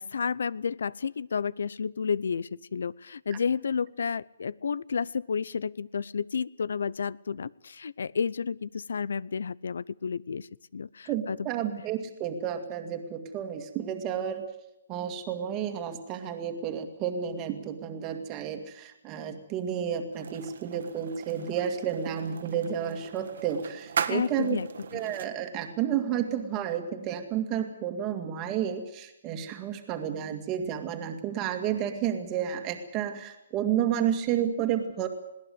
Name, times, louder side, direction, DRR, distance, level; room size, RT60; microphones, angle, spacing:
voice 1, 0.0-10.5 10.7-11.5 24.1-24.7 24.9-25.0, left 6 dB, 80° left, 23 dB, 0.7 m, -31 dB
voice 2, 11.1-14.5 14.9-24.6 24.9-35.1, right 9 dB, 20° right, 5 dB, 2.2 m, -31 dB
sound 1, 20.1-25.3, right 7 dB, 60° right, 1.7 m, -38 dB
21.0 x 18.0 x 8.0 m, 0.83 s
hypercardioid pair, 170°, 0 cm